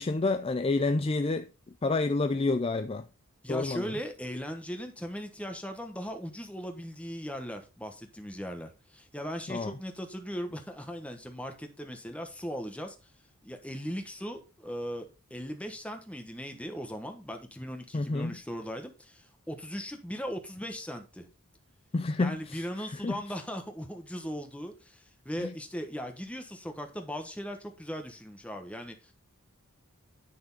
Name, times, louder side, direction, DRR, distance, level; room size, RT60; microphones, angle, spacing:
voice 1, 0.0-1.5 1.8-3.1 3.5-3.9 9.5-9.7 17.9-18.4 21.9-22.6 22.9-23.2 25.4-25.5, left 3 dB, 25° left, 0.4 m, -29 dB
voice 2, 3.4-12.9 13.4-21.3 22.2-29.1, equal, 5° left, 1.2 m, -38 dB
9.5 x 6.3 x 4.0 m
head